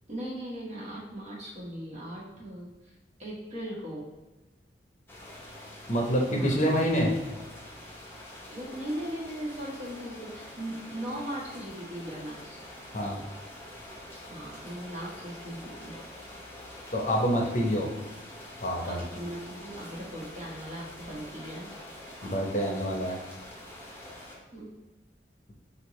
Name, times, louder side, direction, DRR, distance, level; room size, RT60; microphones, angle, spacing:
voice 1, 0.1-2.9 3.2-4.1 6.3-6.6 8.5-12.6 14.3-15.9 18.8-21.7 24.5-24.7, right 1 dB, 40° right, -5 dB, 1.4 m, -38 dB
sound 1, 5.1-24.4, left 1 dB, 15° left, 0.9 m, -46 dB
voice 2, 5.9-7.1 12.9-13.2 16.9-17.9 18.6-19.0 22.2-23.2, equal, 45° left, -1 dB, 0.9 m, -26 dB
6.3 x 2.7 x 3.1 m, 1.1 s
head